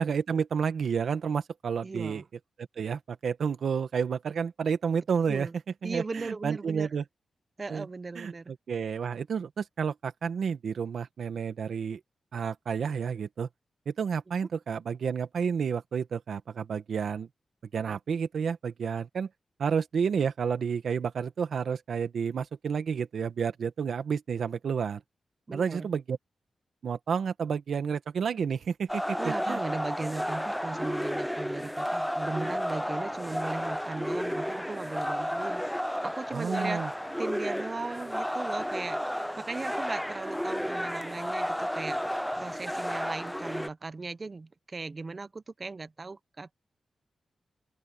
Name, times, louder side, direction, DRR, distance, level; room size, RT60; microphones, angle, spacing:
voice 1, 0.0-2.2 2.6-5.5 5.8-7.0 7.7-7.9 8.1-12.0 12.3-13.5 13.8-17.3 17.7-19.3 19.6-25.0 25.5-26.2 26.8-29.6 36.3-36.9, right 6 dB, 75° right, 1.5 m, -30 dB
voice 2, 1.8-2.2 5.3-5.5 5.8-6.9 7.6-8.5 25.5-25.9 29.2-35.7 36.0-36.8 37.2-46.5, right 3 dB, 35° right, 0.7 m, -38 dB
sound 1, 28.9-43.7, equal, ahead, 0.4 m, -32 dB
open air
wide cardioid pair, 115°, 0 cm